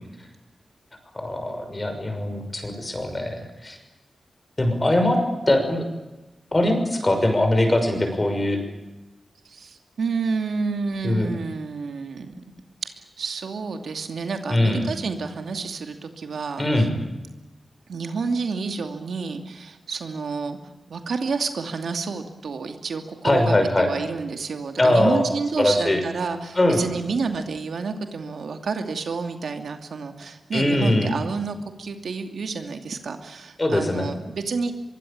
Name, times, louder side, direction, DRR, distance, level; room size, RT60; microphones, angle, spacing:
voice 1, 1.1-3.8 4.6-5.2 5.5-5.8 6.5-8.6 11.0-11.3 14.5-14.9 16.6-16.9 23.2-23.9 24.8-25.3 25.6-26.0 26.6-26.8 30.5-31.2 33.6-34.1, left 1 dB, 20° left, 6 dB, 6.1 m, -21 dB
voice 2, 9.4-12.4 12.8-16.9 17.9-20.6 20.9-34.7, right 4 dB, 75° right, 6 dB, 2.7 m, -29 dB
24.0 x 23.5 x 8.8 m, 1.0 s
wide cardioid pair, 140°, 0 cm